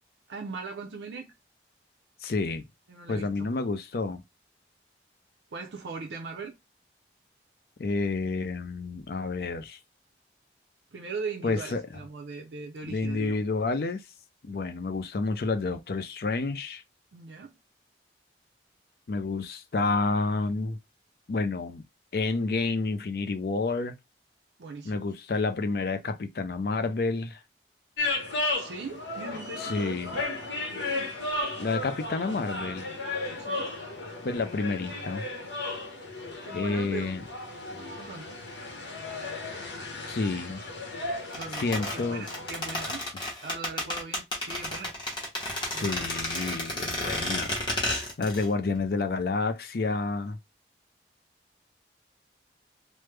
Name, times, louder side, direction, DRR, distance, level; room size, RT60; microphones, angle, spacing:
voice 1, 0.3-1.3 2.9-3.5 5.5-6.6 10.9-13.4 17.1-17.6 24.6-25.1 28.6-30.1 30.7-31.1 31.8-32.0 33.4-33.7 36.2-37.1 37.7-38.4 41.3-43.1 43.4-44.9 45.7-46.1, right 4 dB, 80° right, 0.5 m, -40 dB
voice 2, 2.2-2.7 3.1-4.2 7.8-9.8 11.4-11.8 12.9-14.0 14.4-16.8 19.1-20.8 21.3-21.8 22.1-23.9 24.8-27.4 29.6-30.1 31.6-32.9 34.2-35.2 36.5-37.2 40.1-40.6 41.6-42.3 45.7-50.4, left 3 dB, 55° left, 0.4 m, -29 dB
sound 1, 28.0-42.9, left 2 dB, 80° left, 1.0 m, -35 dB
sound 2, 41.3-48.5 48.7-48.8, left 1 dB, 25° left, 1.0 m, -32 dB
3.2 x 2.0 x 3.2 m
head